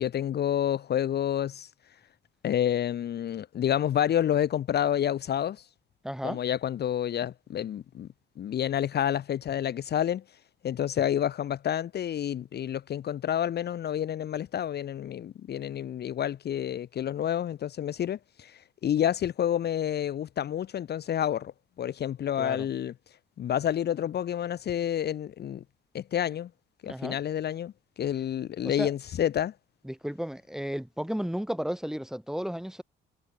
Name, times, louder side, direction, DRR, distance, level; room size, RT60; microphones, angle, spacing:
voice 1, 0.0-1.7 2.4-5.7 6.2-8.1 8.4-10.2 10.6-21.5 21.8-22.9 23.4-25.6 25.9-26.5 26.8-29.5, left 10 dB, 55° left, 0.8 m, -29 dB
voice 2, 6.0-6.4 22.4-22.7 26.9-27.2 28.6-28.9 29.8-32.8, equal, ahead, 3.8 m, -33 dB
cardioid pair, 90°, 20 cm